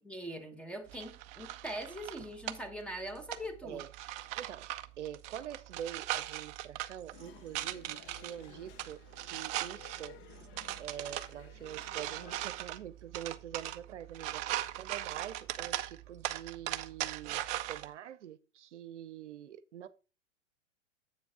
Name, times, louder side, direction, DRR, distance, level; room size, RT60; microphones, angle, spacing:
voice 1, 0.0-3.8, equal, 5° left, 1.2 m, -42 dB
sound 1, 0.9-17.9, right 15 dB, 20° right, 0.3 m, -40 dB
voice 2, 4.3-4.7 5.0-10.2 10.8-19.9, right 10 dB, 70° right, 0.7 m, -45 dB
sound 2, 7.1-12.4, left 8 dB, 30° left, 0.9 m, -55 dB
7.9 x 6.9 x 3.5 m
hypercardioid pair, 105°, 36 cm